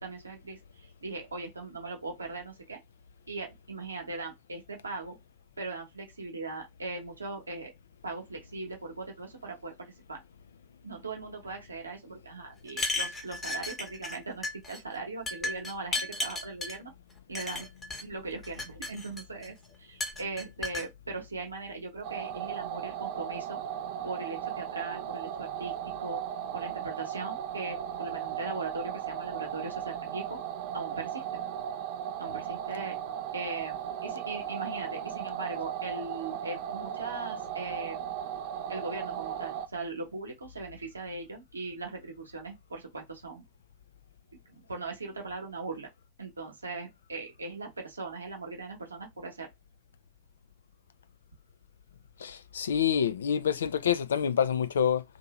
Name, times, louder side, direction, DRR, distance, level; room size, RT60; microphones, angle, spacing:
voice 1, 0.0-2.8 3.3-5.2 5.6-7.7 8.0-10.2 10.8-16.9 17.3-17.7 18.0-23.6 24.0-26.2 26.5-30.4 30.7-31.2 32.2-33.0 33.3-38.0 38.7-43.4 44.3-45.9 46.2-49.5, right 3 dB, 75° right, 1.0 m, -39 dB
sound 1, 12.7-14.2 14.4-14.8 15.3-16.8 17.3-18.0 18.4-19.5 20.0-20.9, left 2 dB, 15° left, 0.9 m, -34 dB
sound 2, 22.0-39.7, right 10 dB, 50° right, 0.4 m, -36 dB
voice 2, 52.2-55.0, left 8 dB, 65° left, 0.3 m, -27 dB
2.7 x 2.5 x 3.0 m
figure-of-eight pair, 90°, 0 cm